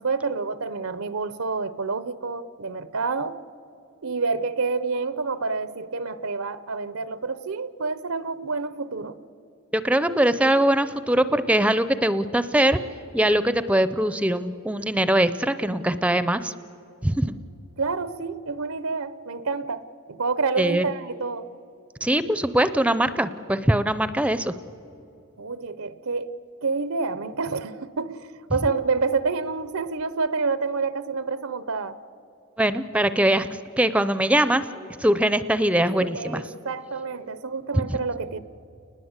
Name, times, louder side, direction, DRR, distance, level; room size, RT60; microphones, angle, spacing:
voice 1, 0.0-3.4 4.0-9.2 17.8-21.5 25.4-26.3 26.6-32.0 36.0-38.4, right 4 dB, 85° right, 14 dB, 0.8 m, -28 dB
voice 2, 9.8-12.8 13.1-16.5 17.0-17.3 20.6-20.8 22.0-24.5 32.6-33.5 33.8-36.4 37.7-38.0, right 1 dB, 5° right, 13 dB, 0.5 m, -22 dB
29.5 x 20.5 x 8.1 m, 2.8 s
head